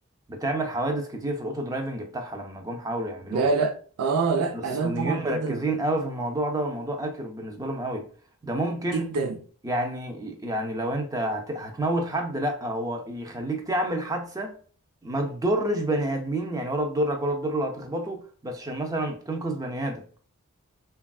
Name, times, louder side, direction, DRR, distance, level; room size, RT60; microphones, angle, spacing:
voice 1, 0.3-3.5 4.5-8.1 8.4-9.1 9.6-14.6 15.0-20.0, right 1 dB, 15° right, 0.4 m, -29 dB
voice 2, 3.3-5.6 8.9-9.4, right 4 dB, 85° right, 0.4 m, -26 dB
3.3 x 2.3 x 2.2 m
head